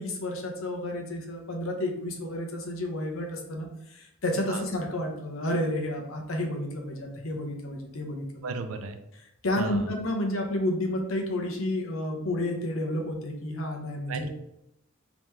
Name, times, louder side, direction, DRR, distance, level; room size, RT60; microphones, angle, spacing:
voice 1, 0.0-8.5 9.4-14.3, left 1 dB, 75° left, 2 dB, 0.8 m, -31 dB
voice 2, 8.4-9.0 9.6-9.9 14.1-14.3, right 4 dB, 90° right, 7 dB, 0.5 m, -34 dB
3.6 x 3.0 x 3.2 m, 0.80 s
head